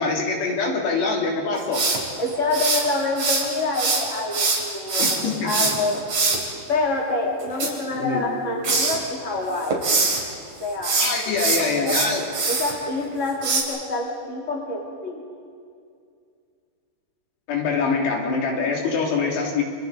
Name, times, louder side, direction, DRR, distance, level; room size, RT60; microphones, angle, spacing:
voice 1, 0.0-1.8 5.0-5.7 7.9-8.4 11.0-12.3 17.5-19.6, left 4 dB, 80° left, -1 dB, 4.8 m, -24 dB
sound 1, 1.7-3.4 3.7-6.4 7.4-8.3 8.6-9.0 9.4-10.2 10.7-12.7 13.4-13.6, right 3 dB, 40° right, 4.1 m, -23 dB
voice 2, 2.2-5.1 5.4-6.0 6.7-9.8 10.6-11.0 12.5-15.2, left 2 dB, 20° left, -2 dB, 3.1 m, -26 dB
29.0 x 27.0 x 4.1 m, 2.3 s
omnidirectional pair, 4.8 m